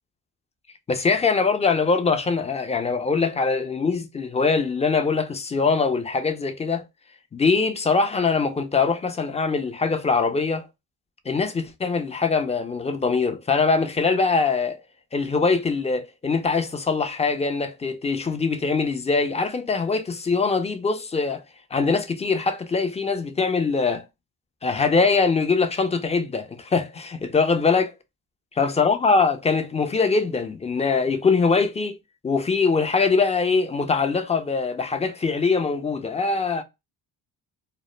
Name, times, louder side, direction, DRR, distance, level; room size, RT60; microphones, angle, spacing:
voice 1, 0.9-6.8 7.3-10.6 11.3-14.8 15.1-21.4 21.7-24.0 24.6-27.9 28.6-32.0 32.2-36.6, left 4 dB, 15° left, 0.4 m, -22 dB
2.1 x 2.0 x 3.0 m
supercardioid pair, 65°, 44 cm